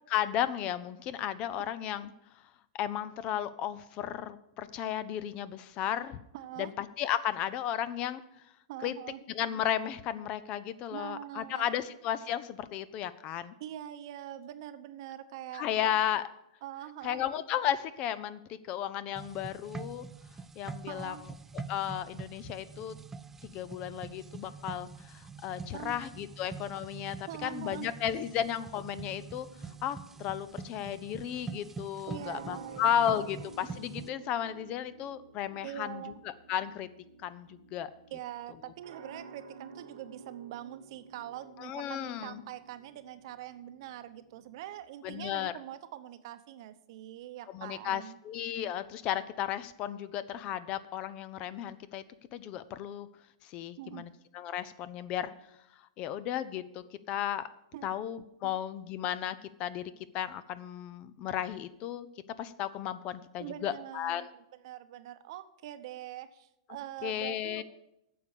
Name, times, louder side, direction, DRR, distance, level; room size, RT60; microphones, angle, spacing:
voice 1, 0.1-2.1 2.7-6.2 6.6-8.2 8.8-8.9 9.3-13.5 15.5-16.2 17.0-20.0 20.6-23.0 23.4-29.5 29.8-36.9 37.2-37.9 41.6-42.4 45.0-45.5 47.5-52.0 52.3-53.1 53.4-55.3 56.0-57.5 57.8-62.1 62.4-64.3 67.0-67.6, left 10 dB, 35° left, 15 dB, 0.6 m, -34 dB
voice 2, 6.3-6.7 8.7-9.2 10.9-11.8 13.6-16.0 16.6-17.2 20.9-21.2 25.7-26.0 27.3-27.9 32.1-32.9 35.6-36.2 38.1-48.2 53.8-54.1 57.7-57.9 58.4-58.6 63.4-67.6, right 12 dB, 60° right, 11 dB, 0.8 m, -43 dB
sound 1, 19.1-34.1, right 5 dB, 10° right, 0.3 m, -45 dB
sound 2, 29.0-44.8, right 4 dB, 85° right, 1.5 m, -53 dB
9.4 x 6.8 x 7.2 m, 0.84 s
hypercardioid pair, 135°, 3 cm